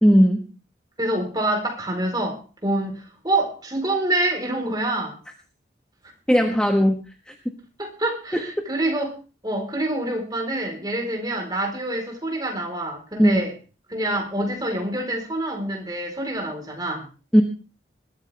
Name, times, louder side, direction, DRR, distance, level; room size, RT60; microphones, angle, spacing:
voice 1, 0.0-0.4 6.3-6.9 8.3-8.4 13.2-13.4 17.3-17.4, equal, 5° left, 2 dB, 1.4 m, -16 dB
voice 2, 1.0-5.2 7.8-9.1 9.4-13.5 13.9-17.1, right 1 dB, 20° right, 3 dB, 4.3 m, -26 dB
21.0 x 13.5 x 3.5 m, 0.35 s
head